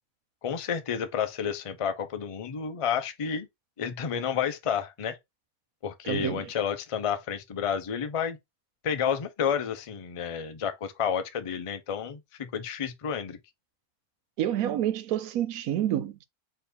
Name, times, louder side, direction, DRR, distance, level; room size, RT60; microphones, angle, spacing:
voice 1, 0.4-3.5 3.8-5.2 5.8-8.4 8.8-13.4, left 7 dB, 45° left, 0.4 m, -30 dB
voice 2, 6.0-6.5 14.4-16.2, right 11 dB, 85° right, 1.1 m, -28 dB
4.4 x 3.2 x 3.5 m
omnidirectional pair, 1.5 m